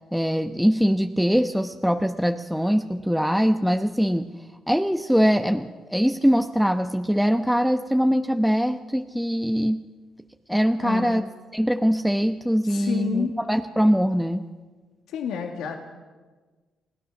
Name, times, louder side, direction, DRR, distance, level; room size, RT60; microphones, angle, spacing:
voice 1, 0.1-4.3 4.7-9.8 10.5-11.2 11.5-14.4, equal, ahead, 6 dB, 0.9 m, -22 dB
voice 2, 10.8-11.2 12.6-13.3 15.1-15.8, left 6 dB, 80° left, 3 dB, 1.8 m, -29 dB
28.0 x 17.0 x 6.0 m, 1.3 s
supercardioid pair, 60°, 0 cm